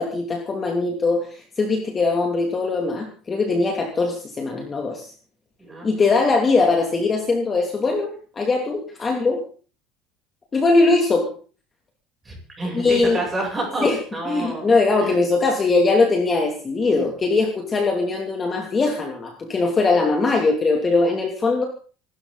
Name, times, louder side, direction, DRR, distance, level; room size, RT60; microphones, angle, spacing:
voice 1, 0.0-5.1 5.8-9.4 10.5-11.3 12.7-13.2 13.8-14.0 14.3-21.6, left 3 dB, 20° left, 2 dB, 2.8 m, -21 dB
voice 2, 12.2-14.7 15.0-15.1 17.0-17.1, right 2 dB, 15° right, 0 dB, 8.0 m, -29 dB
26.5 x 13.0 x 4.1 m, 0.41 s
cardioid pair, 165°, 0 cm